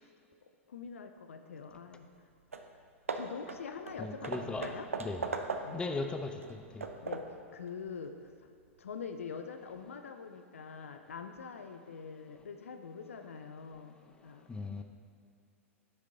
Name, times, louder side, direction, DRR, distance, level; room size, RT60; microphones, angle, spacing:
voice 1, 0.7-2.1 3.1-4.9 5.6-5.8 7.0-8.3 8.8-14.5, left 5 dB, 75° left, 8 dB, 0.6 m, -44 dB
Hammer / Wood, 2.2-2.3 2.5-2.7 3.1-5.9 6.4-7.4, right 4 dB, 80° right, 0.6 m, -39 dB
voice 2, 4.0-4.7 5.0-5.2 5.7-6.3 14.5-14.8, left 3 dB, 10° left, 6 dB, 0.6 m, -36 dB
11.0 x 6.6 x 3.7 m, 2.4 s
figure-of-eight pair, 95°, 7 cm